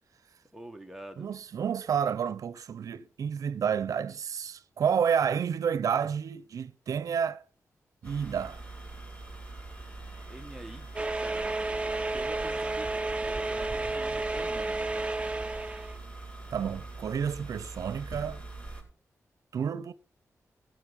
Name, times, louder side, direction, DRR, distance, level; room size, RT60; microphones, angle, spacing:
voice 1, 0.5-1.4 10.3-14.9, right 1 dB, 5° right, 1.7 m, -46 dB
voice 2, 1.2-7.4 8.0-8.6 16.5-18.4 19.5-19.9, right 7 dB, 80° right, 0.7 m, -30 dB
sound 1, 8.0-18.8, right 2 dB, 20° left, 7.3 m, -43 dB
sound 2, 11.0-16.0, right 2 dB, 20° right, 0.9 m, -31 dB
16.0 x 7.7 x 5.3 m
cardioid pair, 85°, 6 cm